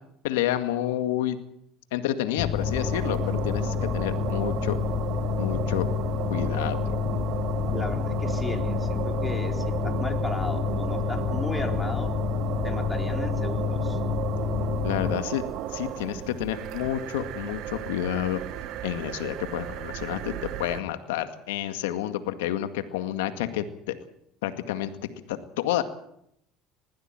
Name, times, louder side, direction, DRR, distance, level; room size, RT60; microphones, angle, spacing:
voice 1, 0.2-1.4 1.9-4.8 5.4-5.9 6.3-7.0 14.8-15.4 15.7-18.4 18.8-23.9 24.4-24.9 25.3-25.8, left 12 dB, 90° left, 9 dB, 2.0 m, -29 dB
Mechanical fan, 2.4-15.1, left 10 dB, 45° left, 1.3 m, -29 dB
sound 1, 2.4-20.8, right 11 dB, 65° right, 1.6 m, -33 dB
voice 2, 7.7-12.1 12.6-14.0, left 3 dB, 15° left, 4 dB, 4.1 m, -35 dB
20.5 x 15.5 x 9.1 m, 0.74 s
supercardioid pair, 90°, 0 cm